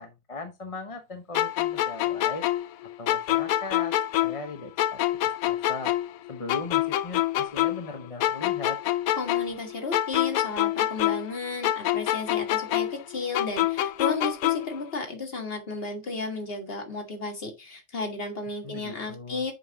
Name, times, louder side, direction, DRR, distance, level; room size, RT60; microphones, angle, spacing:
voice 1, 0.0-2.5 2.8-4.0 4.2-5.9 6.3-8.8 18.6-19.4, left 3 dB, 30° left, 0.9 m, -39 dB
sound 1, 1.3-4.5 4.8-7.9 8.2-11.4 11.6-14.8, left 13 dB, 85° left, 1.0 m, -26 dB
voice 2, 9.2-19.5, left 3 dB, 45° left, 1.9 m, -33 dB
7.2 x 5.6 x 3.8 m
omnidirectional pair, 1.5 m